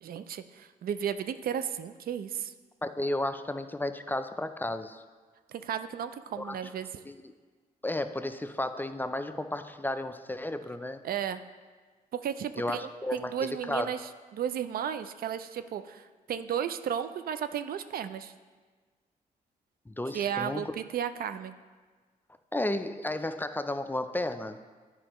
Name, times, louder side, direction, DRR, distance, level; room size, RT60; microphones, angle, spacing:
voice 1, 0.0-2.5 5.5-6.9 11.0-11.4 12.1-18.3 20.1-21.5, right 9 dB, 65° right, 11 dB, 0.4 m, -34 dB
voice 2, 2.8-5.0 6.4-6.6 7.1-7.2 7.8-11.0 12.6-13.9 19.9-20.7 22.5-24.6, left 1 dB, 10° left, 9 dB, 0.4 m, -33 dB
9.7 x 5.1 x 3.0 m, 1.4 s
supercardioid pair, 60°, 16 cm